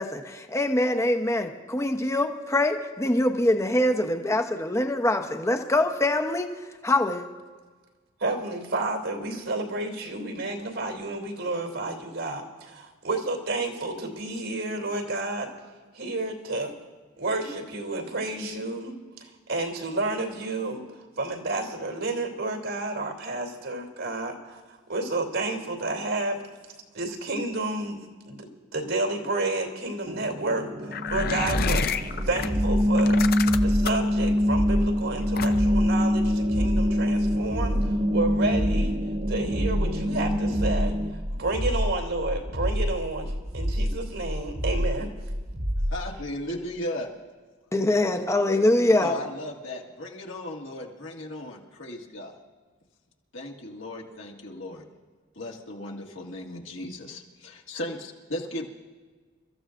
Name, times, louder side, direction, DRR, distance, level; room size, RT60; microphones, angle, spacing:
voice 1, 0.0-6.5 6.8-7.3 47.7-49.1, left 1 dB, 15° left, 6 dB, 0.9 m, -24 dB
voice 2, 8.2-15.5 15.9-16.7 17.2-18.9 19.2-20.8 21.2-24.6 24.9-26.4 26.9-28.0 28.3-33.2 33.6-39.0 39.3-40.9 41.3-45.1, right 2 dB, 80° right, 2 dB, 2.9 m, -30 dB
sound 1, 30.1-41.1, equal, 30° right, 0.6 m, -25 dB
sound 2, 30.9-32.5 33.0-34.1 35.4-35.8, left 6 dB, 50° left, 0.6 m, -29 dB
sound 3, 31.1-46.0, equal, 55° right, 1.6 m, -29 dB
voice 3, 45.9-47.1 49.0-52.3 53.3-54.9 55.3-58.7, left 1 dB, 70° left, -1 dB, 1.9 m, -36 dB
28.5 x 14.0 x 2.6 m, 1.4 s
head